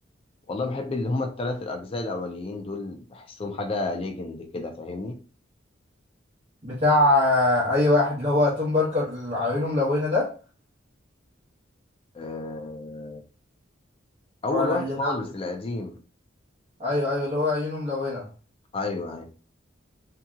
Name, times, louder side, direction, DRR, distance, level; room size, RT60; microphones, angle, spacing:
voice 1, 0.5-5.2 12.1-13.2 14.4-16.0 18.7-19.3, left 2 dB, 30° left, 5 dB, 0.4 m, -31 dB
voice 2, 6.6-10.3 14.5-15.1 16.8-18.2, left 2 dB, 35° right, -8 dB, 1.0 m, -23 dB
2.7 x 2.7 x 2.3 m, 0.36 s
head